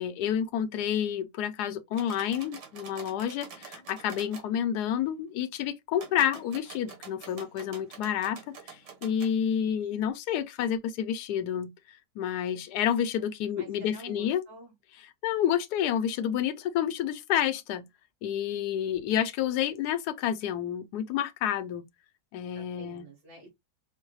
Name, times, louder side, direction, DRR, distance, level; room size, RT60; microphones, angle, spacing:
voice 1, 0.0-14.4 15.2-17.8 18.2-21.8 22.3-23.1, left 9 dB, 75° left, 1.1 m, -29 dB
sound 1, 1.9-4.5 5.9-9.3, right 6 dB, 80° right, 1.8 m, -47 dB
voice 2, 13.6-14.7 22.5-23.5, right 1 dB, 60° right, 2.0 m, -48 dB
5.4 x 2.1 x 3.0 m
omnidirectional pair, 1.8 m